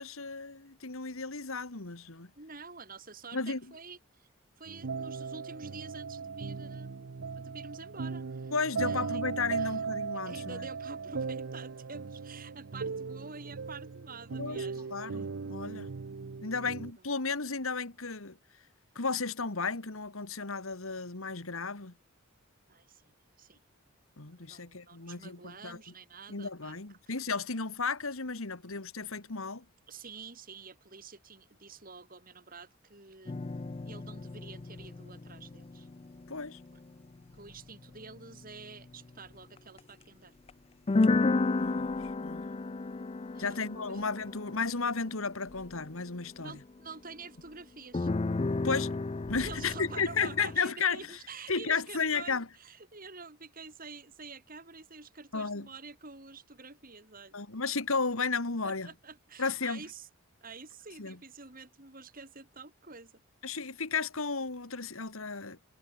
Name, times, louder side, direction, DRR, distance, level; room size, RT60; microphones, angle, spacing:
voice 1, 0.0-2.3 3.3-3.6 8.5-10.6 14.4-15.9 16.4-18.4 19.0-21.9 24.2-25.8 26.3-29.6 36.3-36.6 41.6-42.4 43.4-46.6 48.6-49.0 49.3-51.0 51.5-52.5 55.3-55.7 57.3-58.9 59.4-59.8 61.0-61.2 63.4-65.6, left 4 dB, 70° left, 2.0 m, -34 dB
voice 2, 2.4-4.3 4.6-7.1 7.3-8.5 8.8-9.2 9.5-9.8 10.2-15.3 16.6-16.7 22.7-23.6 24.3-26.8 27.1-27.4 29.9-33.5 33.9-35.9 37.3-40.3 43.3-43.6 43.9-44.0 46.4-48.1 49.4-57.4 58.6-60.1 60.4-63.1, right 4 dB, 40° right, 3.1 m, -48 dB
sound 1, 4.7-16.9, right 5 dB, 65° right, 0.6 m, -38 dB
sound 2, 33.3-39.1 39.6-39.8 40.5-40.6 40.9-46.9 47.9-50.6, left 3 dB, 25° left, 0.4 m, -33 dB
head